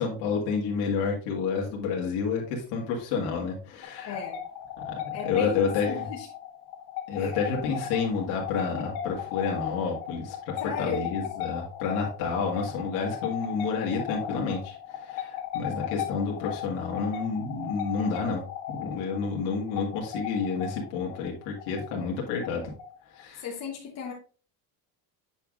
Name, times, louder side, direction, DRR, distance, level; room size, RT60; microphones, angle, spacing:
voice 1, 0.0-4.2 4.8-6.1 7.1-18.4 18.7-22.6 23.1-23.5, left 5 dB, 85° left, 1.9 m, -30 dB
sound 1, 3.8-23.2, left 9 dB, 70° left, 1.3 m, -37 dB
voice 2, 4.0-4.4 5.1-6.3 7.2-7.4 10.6-11.1 23.3-24.1, left 6 dB, 40° left, 1.2 m, -35 dB
8.1 x 5.7 x 2.5 m
cardioid pair, 170°, 41 cm